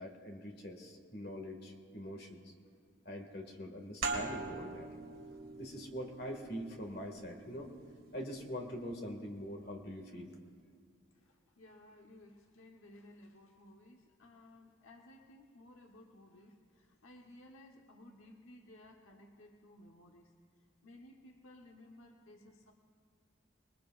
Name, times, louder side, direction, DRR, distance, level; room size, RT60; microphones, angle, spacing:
voice 1, 0.0-2.5 3.1-4.9 5.6-7.7 8.1-10.3, equal, 50° left, 2 dB, 2.1 m, -44 dB
sound 1, 4.0-9.3, right 4 dB, 80° right, 2.0 m, -43 dB
voice 2, 11.1-20.3 20.8-22.7, left 1 dB, 90° left, 1 dB, 1.2 m, -57 dB
27.0 x 21.0 x 2.6 m, 2.1 s
head